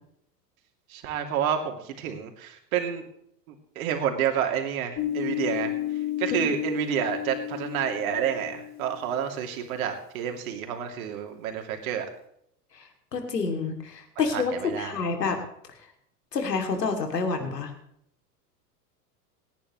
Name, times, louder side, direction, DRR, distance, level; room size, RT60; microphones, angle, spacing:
voice 1, 0.9-3.0 3.5-5.7 6.2-12.1 14.3-14.9, right 9 dB, 60° right, 4 dB, 2.9 m, -29 dB
sound 1, 5.0-9.2, left 14 dB, 35° left, 3.9 m, -32 dB
voice 2, 13.1-15.4 16.3-17.7, left 4 dB, 75° left, 4 dB, 2.9 m, -28 dB
28.0 x 10.5 x 3.2 m, 0.71 s
figure-of-eight pair, 85°, 49 cm